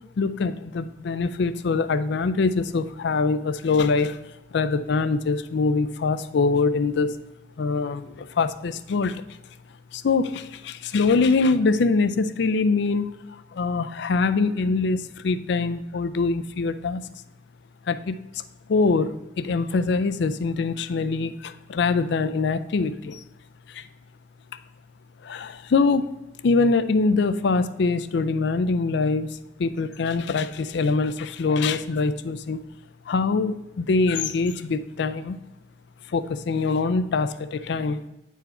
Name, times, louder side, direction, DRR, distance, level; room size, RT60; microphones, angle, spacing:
voice 1, 0.2-4.2 4.5-7.1 7.6-9.2 9.9-13.1 13.5-17.0 17.9-18.4 18.7-23.2 23.7-23.8 25.2-26.1 26.4-32.6 33.1-35.4 36.1-38.0, left 4 dB, 65° left, 12 dB, 0.4 m, -24 dB
9.1 x 4.6 x 4.2 m, 0.98 s
head